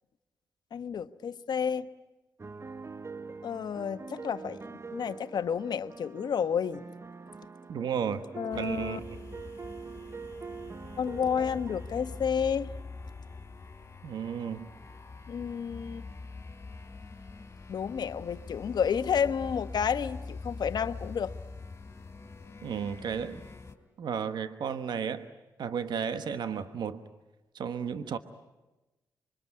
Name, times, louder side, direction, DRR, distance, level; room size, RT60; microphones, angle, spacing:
voice 1, 0.7-1.9 3.4-6.8 8.4-9.0 11.0-12.7 15.3-16.0 17.7-21.3, left 7 dB, 65° left, 11 dB, 1.1 m, -31 dB
sound 1, 2.4-12.2, right 4 dB, 35° right, 0.9 m, -44 dB
voice 2, 7.7-8.3 8.5-9.0 14.0-14.6 22.6-23.4 24.0-25.3 25.6-27.0 27.5-28.2, right 7 dB, 70° right, 10 dB, 1.2 m, -33 dB
sound 2, 8.5-23.8, left 3 dB, 35° left, 3.6 m, -44 dB
25.5 x 23.5 x 9.7 m, 1.1 s
cardioid pair, 60°, 8 cm